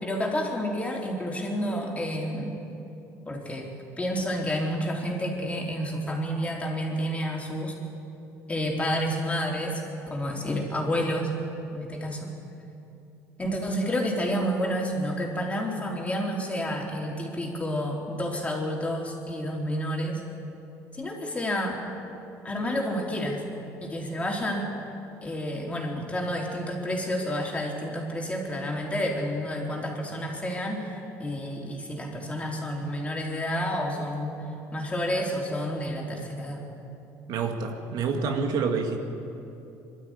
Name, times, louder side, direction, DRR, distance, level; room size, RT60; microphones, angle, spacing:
voice 1, 0.0-2.6 3.3-3.7 4.0-7.8 8.5-9.8 10.1-11.3 11.7-12.3 13.4-20.2 20.9-21.8 22.4-23.4 23.8-24.7 25.2-34.4 34.7-36.6, equal, 15° left, 0 dB, 4.0 m, -30 dB
voice 2, 37.3-39.0, right 5 dB, 65° right, 4 dB, 2.0 m, -27 dB
21.5 x 13.0 x 9.9 m, 2.9 s
supercardioid pair, 100°, 8 cm